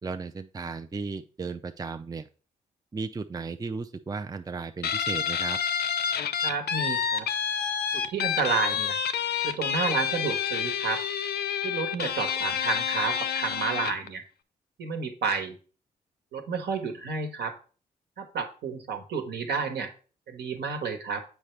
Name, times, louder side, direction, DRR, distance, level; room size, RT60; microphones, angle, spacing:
voice 1, 0.0-2.3 2.9-5.6, right 4 dB, 20° right, 8 dB, 0.5 m, -35 dB
Guitar, 4.8-14.1, left 8 dB, 65° left, 0.7 m, -29 dB
voice 2, 6.4-7.3 7.9-9.0 9.4-11.0 11.6-14.2 14.8-15.6 16.3-17.6 18.2-19.9 20.3-21.2, right 5 dB, 70° right, 5 dB, 1.3 m, -30 dB
7.3 x 4.8 x 3.3 m, 0.38 s
hypercardioid pair, 45°, 18 cm